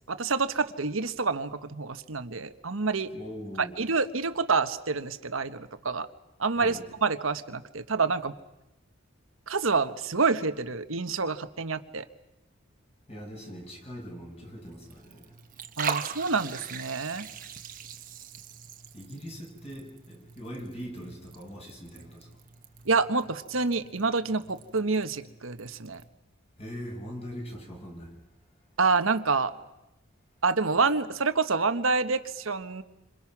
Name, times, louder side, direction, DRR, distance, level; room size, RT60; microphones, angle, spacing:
voice 1, 0.1-3.1 3.8-6.1 6.4-8.3 9.5-12.0 15.8-17.3 22.9-26.0 28.8-29.5 30.4-32.8, right 4 dB, 80° right, 11 dB, 1.3 m, -27 dB
voice 2, 3.1-3.7 6.6-6.8 13.1-15.3 18.9-22.3 26.6-28.1, equal, 30° left, 0 dB, 6.4 m, -41 dB
Liquid, 14.6-26.1, right 7 dB, 40° right, 1.3 m, -41 dB
29.0 x 26.5 x 6.1 m, 0.96 s
head